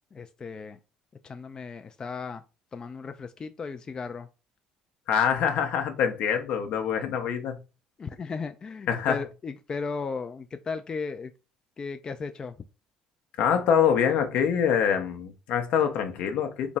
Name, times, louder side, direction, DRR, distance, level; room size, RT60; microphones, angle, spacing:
voice 1, 0.1-0.8 1.2-2.4 2.7-4.3 8.0-11.3 11.8-12.5, left 4 dB, 35° left, 0.3 m, -35 dB
voice 2, 5.1-7.5 8.9-9.2 13.4-16.8, left 8 dB, 70° left, 0.7 m, -25 dB
3.4 x 2.0 x 4.0 m
supercardioid pair, 75°, 2 cm